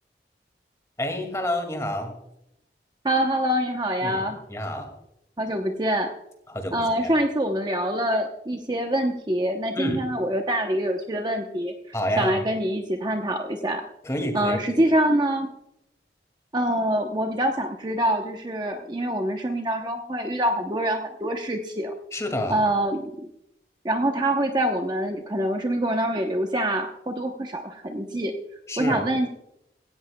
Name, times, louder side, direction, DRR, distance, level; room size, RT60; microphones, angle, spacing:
voice 1, 1.0-2.2 4.0-4.2 4.5-5.0 6.5-7.1 9.7-10.0 11.9-12.4 14.0-14.6 22.1-22.6 28.7-29.1, left 1 dB, 15° left, 5 dB, 2.1 m, -29 dB
voice 2, 3.0-4.4 5.4-6.1 6.7-11.7 12.2-13.8 14.3-15.5 16.5-21.9 22.5-23.3 23.8-28.3 28.8-29.3, right 1 dB, 25° right, 3 dB, 0.8 m, -25 dB
17.0 x 15.5 x 2.3 m, 0.82 s
head